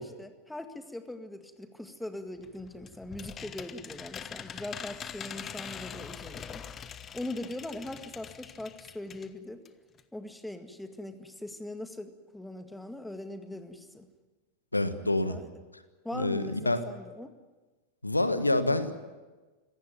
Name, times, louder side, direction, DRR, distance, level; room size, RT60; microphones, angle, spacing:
voice 1, 0.0-6.6 7.1-9.6 10.1-14.1 15.3-15.5 16.0-17.3, left 1 dB, 5° left, 8 dB, 1.9 m, -41 dB
sound 1, 2.4-9.3 9.6-9.7 10.0-10.1, left 8 dB, 25° left, 1.1 m, -43 dB
voice 2, 14.7-15.4 16.1-16.8 18.0-18.9, left 2 dB, 85° left, 12 dB, 1.4 m, -27 dB
25.5 x 17.5 x 9.3 m, 1.3 s
figure-of-eight pair, 90°, 0 cm